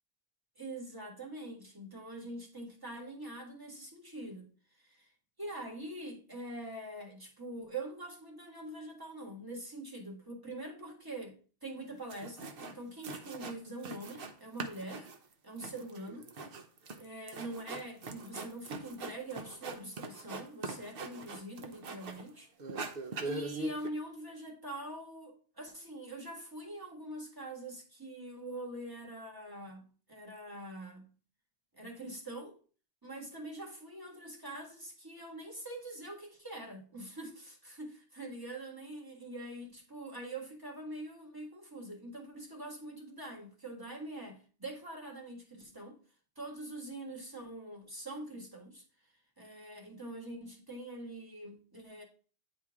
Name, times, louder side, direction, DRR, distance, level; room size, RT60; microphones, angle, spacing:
voice 1, 0.6-4.5 4.7-5.1 5.4-15.1 15.4-16.3 16.9-22.5 23.2-29.8 30.1-31.0 31.7-32.6 33.0-37.9 38.2-46.0 46.4-48.8 49.4-52.0, right 1 dB, 20° right, 1.6 m, -44 dB
sound 1, 11.8-11.9 12.1-12.8 13.0-14.3 14.6-22.3 22.6-23.9, right 3 dB, 60° right, 1.0 m, -42 dB
9.4 x 4.4 x 3.6 m
omnidirectional pair, 1.1 m